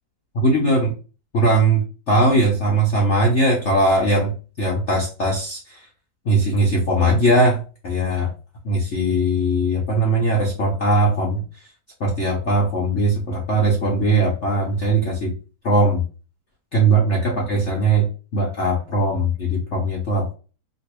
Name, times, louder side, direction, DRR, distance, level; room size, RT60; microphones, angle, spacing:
voice 1, 0.3-0.9 1.3-5.9 6.2-7.6 7.8-8.3 8.6-11.4 12.0-15.3 15.6-16.0 16.7-18.1 18.3-20.3, right 1 dB, 60° left, -2 dB, 0.7 m, -19 dB
3.1 x 3.0 x 2.9 m, 0.34 s
omnidirectional pair, 2.2 m